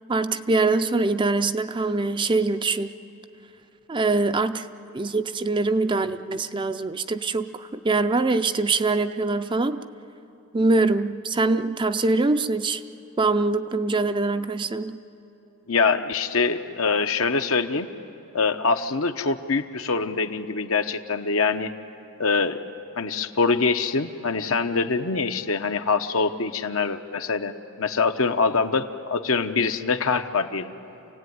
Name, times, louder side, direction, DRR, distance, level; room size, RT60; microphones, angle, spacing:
voice 1, 0.1-3.0 3.9-4.7 4.9-9.8 10.5-12.8 13.2-15.0, right 3 dB, 20° right, 10 dB, 0.5 m, -23 dB
voice 2, 15.7-17.9 18.3-21.7 22.2-22.6 23.0-27.5 27.8-30.7, left 4 dB, 65° left, 8 dB, 0.9 m, -24 dB
28.0 x 17.0 x 9.4 m, 2.9 s
head